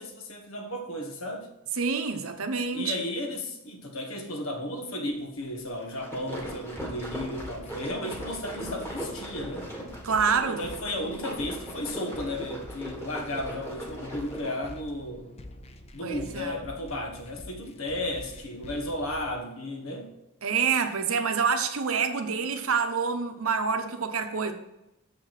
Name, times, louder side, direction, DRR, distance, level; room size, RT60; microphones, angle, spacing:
voice 1, 0.0-1.5 2.7-9.7 10.5-15.4 15.9-20.1, left 1 dB, 70° left, 1.4 m, -34 dB
voice 2, 1.8-3.0 10.0-10.6 11.0-11.1 16.0-16.6 20.4-24.5, right 5 dB, 75° right, 0.9 m, -27 dB
sound 1, 5.8-14.7, equal, 10° left, 1.8 m, -39 dB
sound 2, 7.4-19.4, left 1 dB, 30° left, 0.6 m, -46 dB
6.8 x 5.7 x 5.9 m
head